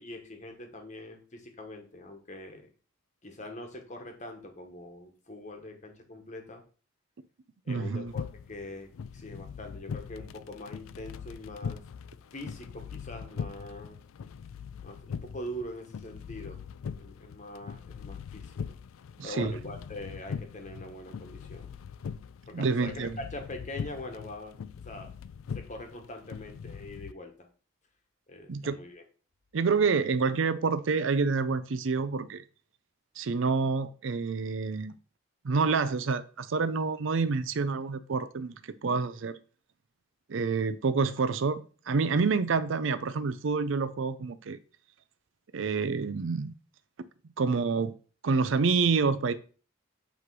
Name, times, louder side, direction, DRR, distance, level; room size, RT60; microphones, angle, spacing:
voice 1, 0.0-2.7 3.2-6.6 7.6-11.8 12.3-14.0 14.8-16.6 17.0-18.5 19.2-21.7 22.5-24.6 24.8-25.1 25.5-27.5 28.3-29.0, left 1 dB, 35° left, 1.2 m, -43 dB
voice 2, 7.7-8.1 19.2-19.5 22.5-23.2 28.5-28.8 29.5-32.4 33.2-34.9 35.4-39.4 40.3-44.6 45.5-46.5 47.4-47.9 48.2-49.3, right 4 dB, 65° right, 0.5 m, -28 dB
sound 1, 8.1-27.1, left 6 dB, 75° left, 0.3 m, -41 dB
8.1 x 3.2 x 4.7 m
head